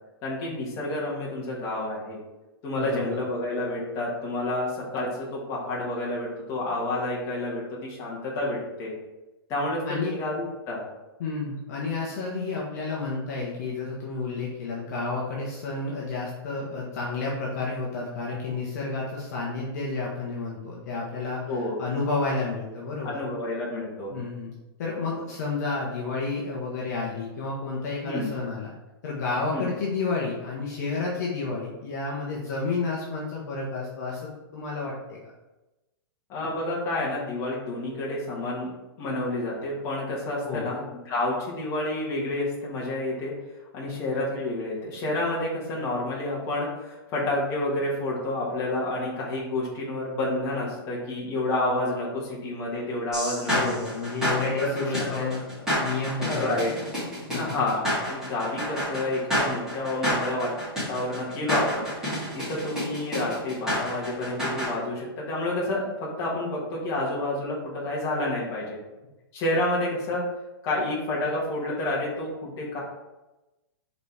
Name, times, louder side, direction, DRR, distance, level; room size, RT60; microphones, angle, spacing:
voice 1, 0.2-2.2 2.6-8.9 9.5-10.8 21.5-21.8 23.0-24.1 28.0-28.3 29.5-29.7 36.3-38.7 39.0-43.3 43.7-53.7 54.6-54.8 55.1-55.2 56.3-56.7 57.3-60.5 60.9-68.8 69.3-70.2 70.6-72.8, left 1 dB, 20° left, -5 dB, 1.5 m, -29 dB
voice 2, 11.2-23.2 24.1-24.5 24.8-28.7 29.0-35.3 40.4-40.7 53.5-56.6 57.3-57.6, left 3 dB, 40° left, -4 dB, 1.1 m, -31 dB
sound 1, 53.1-64.7, equal, 5° right, 2.2 m, -29 dB
5.2 x 4.1 x 5.0 m, 1.0 s
hypercardioid pair, 175°, 13 cm